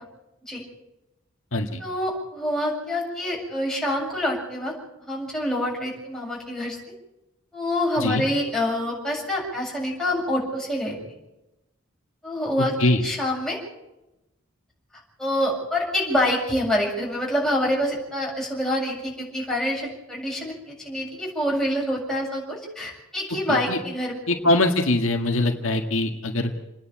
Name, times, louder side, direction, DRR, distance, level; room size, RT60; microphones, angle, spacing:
voice 1, 1.8-4.7 5.1-6.8 7.5-11.0 12.2-12.7 13.0-13.6 15.2-24.3, left 1 dB, 5° left, -3 dB, 7.4 m, -26 dB
voice 2, 24.3-26.5, left 2 dB, 70° left, 4 dB, 1.9 m, -22 dB
29.5 x 10.5 x 8.7 m, 0.96 s
head